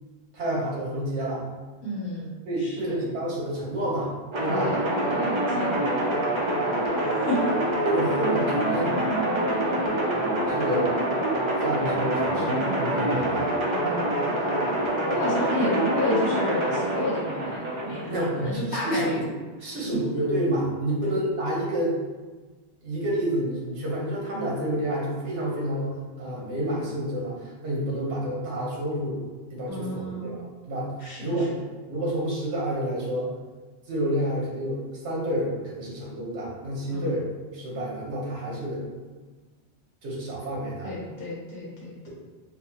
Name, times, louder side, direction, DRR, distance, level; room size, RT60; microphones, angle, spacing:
voice 1, 0.3-1.4 2.5-4.1 4.4-4.7 7.8-9.1 10.5-10.9 11.4-13.5 18.1-19.2 19.6-22.0 22.8-29.2 29.5-31.6 31.9-33.3 33.9-37.3 37.5-38.8 40.0-40.9, right 1 dB, 85° right, -4 dB, 1.2 m, -29 dB
voice 2, 1.8-2.9 4.5-6.0 6.9-7.5 13.7-14.3 15.1-19.2 19.6-19.8 21.0-21.2 29.7-30.4 31.0-31.5 36.9-37.0 40.8-42.1, left 1 dB, 65° left, -6 dB, 1.0 m, -31 dB
sound 1, 4.3-18.0, right 1 dB, 40° right, 0.4 m, -26 dB
4.0 x 2.1 x 2.8 m, 1.3 s
omnidirectional pair, 1.1 m